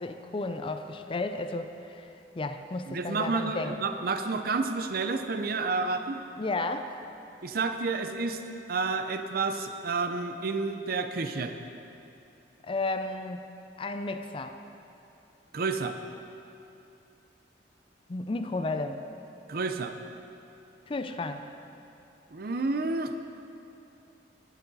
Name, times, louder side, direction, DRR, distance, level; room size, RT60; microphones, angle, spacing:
voice 1, 0.0-2.1 2.4-3.8 6.4-6.9 12.6-13.5 13.8-14.6 18.1-19.0 20.9-21.5, left 2 dB, 30° left, 7 dB, 0.4 m, -33 dB
voice 2, 2.9-6.2 7.4-8.4 8.7-11.5 15.5-16.0 19.5-19.9 22.3-23.1, right 4 dB, 55° right, 7 dB, 0.6 m, -30 dB
12.0 x 10.0 x 4.0 m, 2.8 s
head